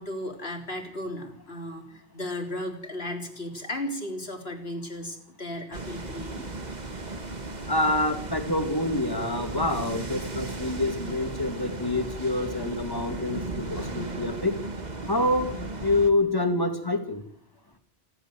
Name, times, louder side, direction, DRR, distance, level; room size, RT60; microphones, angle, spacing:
voice 1, 0.0-6.4, left 1 dB, 70° left, 3 dB, 3.9 m, -35 dB
sound 1, 5.7-16.1, right 3 dB, 45° right, 1.9 m, -36 dB
voice 2, 7.7-14.6 15.1-17.2, left 2 dB, 20° left, 7 dB, 2.4 m, -27 dB
28.0 x 12.0 x 7.9 m, 0.62 s
omnidirectional pair, 1.1 m